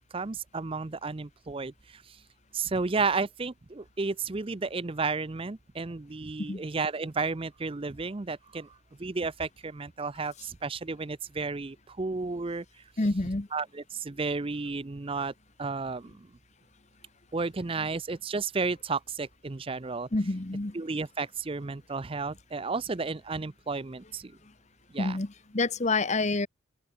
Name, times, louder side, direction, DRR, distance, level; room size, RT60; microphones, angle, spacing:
voice 1, 0.0-2.2 2.5-8.7 9.0-12.6 13.5-15.3 15.6-16.3 17.3-20.1 20.7-24.3 24.9-25.2, right 4 dB, 25° right, 0.5 m, -32 dB
voice 2, 13.0-13.5 20.1-20.7 25.0-26.5, left 3 dB, 30° left, 0.9 m, -28 dB
open air
head